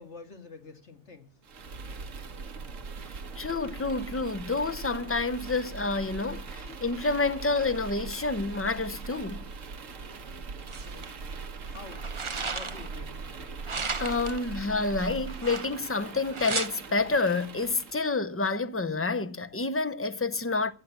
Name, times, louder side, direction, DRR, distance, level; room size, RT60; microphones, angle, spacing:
voice 1, 0.0-1.3 10.8-11.1 11.6-13.5, left 4 dB, 60° left, 2.3 m, -48 dB
sound 1, 1.4-18.1, right 4 dB, 80° right, 1.6 m, -41 dB
voice 2, 3.4-9.4 14.0-20.7, left 3 dB, 25° left, 0.3 m, -29 dB
sound 2, 10.7-11.1 11.7-13.0 13.6-14.4 15.3-16.0 16.3-16.7, right 4 dB, 30° right, 0.7 m, -34 dB
14.5 x 8.9 x 7.4 m
omnidirectional pair, 1.3 m